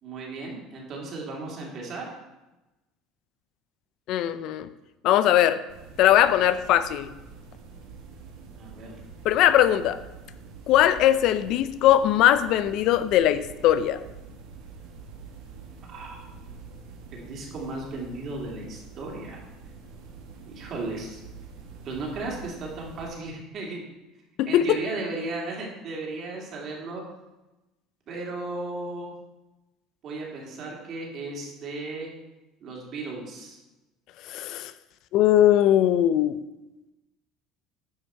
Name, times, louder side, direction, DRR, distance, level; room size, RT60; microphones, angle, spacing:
voice 1, 0.0-2.1 8.6-8.9 15.8-16.2 17.1-19.4 20.5-21.2 21.8-23.8 24.4-27.0 28.1-29.1 30.0-32.1 32.6-33.6, right 2 dB, 50° right, -1 dB, 2.6 m, -35 dB
voice 2, 4.1-4.7 5.0-5.6 6.0-7.1 9.2-10.0 10.7-14.0 24.4-24.8 34.3-34.7 35.1-36.4, left 12 dB, 60° left, 14 dB, 0.4 m, -20 dB
sound 1, 5.7-23.1, right 5 dB, 75° right, 1.4 m, -46 dB
9.7 x 5.6 x 4.4 m, 1.0 s
supercardioid pair, 115°, 0 cm